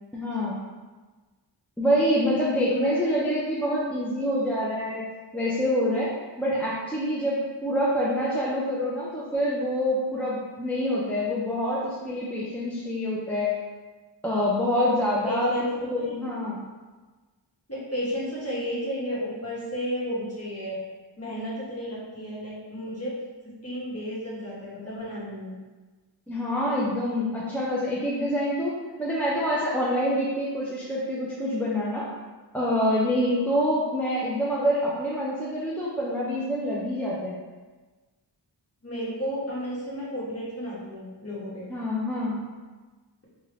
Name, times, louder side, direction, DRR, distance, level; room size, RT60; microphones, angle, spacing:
voice 1, 0.1-0.6 1.8-5.0 5.3-6.1 6.4-13.5 14.2-15.5 15.8-16.6 26.3-32.1 32.5-37.4 41.7-42.4, equal, 5° left, -6 dB, 0.5 m, -26 dB
voice 2, 15.3-15.7 16.0-16.3 17.7-20.8 21.2-23.1 23.6-25.6 38.8-41.7, equal, 35° left, -7 dB, 1.1 m, -32 dB
3.3 x 2.4 x 3.0 m, 1.3 s
wide cardioid pair, 45°, 45 cm